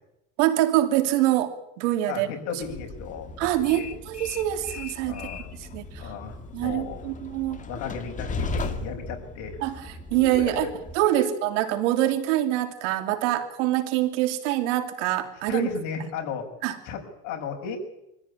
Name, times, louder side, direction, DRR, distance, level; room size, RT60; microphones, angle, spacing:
voice 1, 0.4-1.5 1.8-2.3 3.4-5.1 5.7-6.1 6.5-7.6 9.6-9.7 10.1-10.7 10.9-15.7 16.6-16.8, right 14 dB, 70° right, 7 dB, 3.1 m, -24 dB
voice 2, 2.1-3.5 3.7-3.9 5.0-5.5 6.0-7.1 7.7-9.6 10.2-10.7 11.0-11.3 15.5-16.5 16.8-17.8, left 5 dB, 50° left, 3 dB, 6.0 m, -35 dB
Train, 2.6-10.9, left 3 dB, 20° left, 2.1 m, -37 dB
24.5 x 15.0 x 9.9 m, 0.86 s
supercardioid pair, 135°, 38 cm